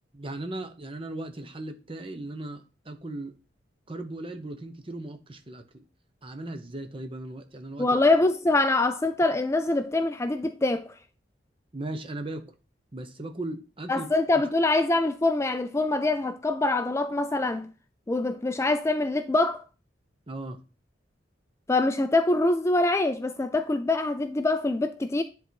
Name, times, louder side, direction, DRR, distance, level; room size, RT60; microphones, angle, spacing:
voice 1, 0.1-3.4 3.9-5.8 6.2-7.9 11.7-12.5 12.9-14.1 20.3-20.6, right 2 dB, 30° right, 0.9 m, -37 dB
voice 2, 7.8-10.9 13.9-17.7 18.1-19.6 21.7-25.2, left 2 dB, 15° left, 0.3 m, -24 dB
10.0 x 3.8 x 4.6 m
head